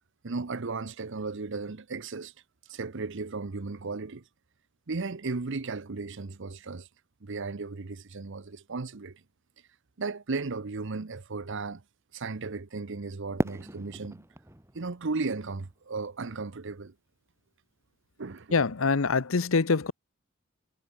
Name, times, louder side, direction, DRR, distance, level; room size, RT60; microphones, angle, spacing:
voice 1, 0.2-2.3 2.7-4.2 4.9-6.9 7.2-9.2 10.0-11.8 12.1-14.2 14.7-16.9 18.2-18.7, right 3 dB, 65° right, 0.8 m, -35 dB
Fireworks, 13.4-16.4, right 1 dB, 15° right, 1.6 m, -37 dB
voice 2, 18.5-19.9, left 4 dB, 75° left, 0.8 m, -24 dB
head